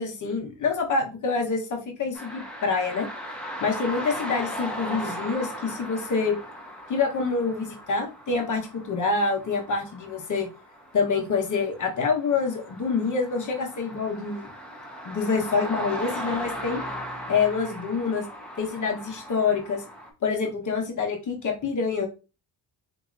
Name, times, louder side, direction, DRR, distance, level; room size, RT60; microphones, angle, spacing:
voice 1, 0.0-3.1 3.6-6.4 6.9-10.5 10.9-14.5 15.0-16.8 17.3-18.2 18.6-19.8 20.2-22.1, left 4 dB, 45° left, 2 dB, 1.0 m, -26 dB
sound 1, 2.1-20.1, equal, 5° left, 0.9 m, -38 dB
4.0 x 2.8 x 2.5 m, 0.32 s
cardioid pair, 105°, 41 cm